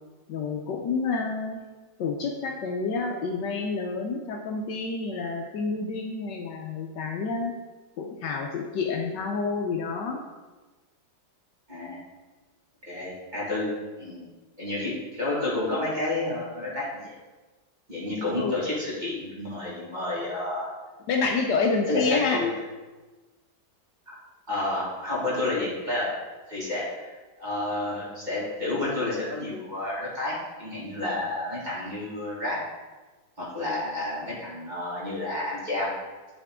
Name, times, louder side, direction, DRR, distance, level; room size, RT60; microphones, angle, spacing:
voice 1, 0.3-1.6 2.0-7.5 8.0-10.2 18.3-18.5 21.1-22.4, left 4 dB, 70° left, 2 dB, 1.2 m, -28 dB
voice 2, 12.8-13.7 14.0-14.3 14.6-17.1 17.9-20.7 21.9-22.5 24.1-24.2 24.5-26.1 26.5-27.1 27.4-32.6 33.4-35.9, left 2 dB, 25° right, -7 dB, 1.7 m, -30 dB
9.7 x 3.6 x 3.5 m, 1.2 s
omnidirectional pair, 2.1 m